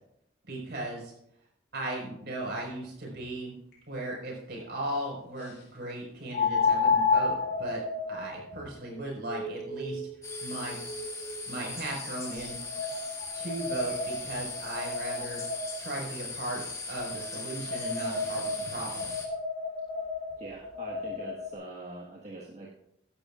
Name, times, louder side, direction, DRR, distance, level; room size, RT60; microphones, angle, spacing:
voice 1, 0.5-1.1 1.7-3.5 3.9-7.8 8.1-10.0 10.4-10.8 11.5-12.9 13.3-15.4 15.8-19.1, right 1 dB, 60° right, -1 dB, 5.2 m, -37 dB
sound 1, 3.7-3.8 6.3-11.5 12.2-15.9 17.0-21.5, left 4 dB, 60° left, 3.3 m, -32 dB
sound 2, 10.2-19.3, left 3 dB, 15° left, 1.8 m, -39 dB
voice 2, 20.4-22.7, right 2 dB, 40° right, -3 dB, 1.6 m, -43 dB
15.5 x 11.5 x 2.5 m, 0.75 s
head